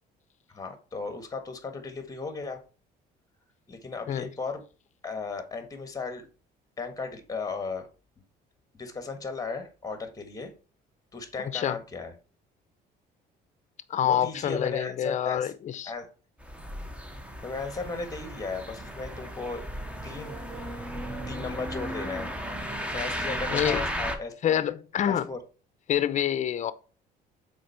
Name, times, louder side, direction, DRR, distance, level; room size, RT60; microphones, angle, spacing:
voice 1, 0.5-2.6 3.7-4.6 5.0-6.3 6.8-7.9 8.7-10.5 11.1-12.1 14.0-15.5 15.9-16.1 17.4-19.6 20.0-20.9 21.3-22.3 22.8-24.6 25.1-25.4, left 4 dB, 20° left, 1.5 m, -36 dB
voice 2, 11.4-11.8 13.9-15.9 23.5-23.9 24.4-25.3 25.9-26.7, left 10 dB, 45° left, 0.6 m, -27 dB
sound 1, 16.4-24.2, equal, 5° right, 1.0 m, -35 dB
6.3 x 4.5 x 4.5 m
cardioid pair, 110°, 17 cm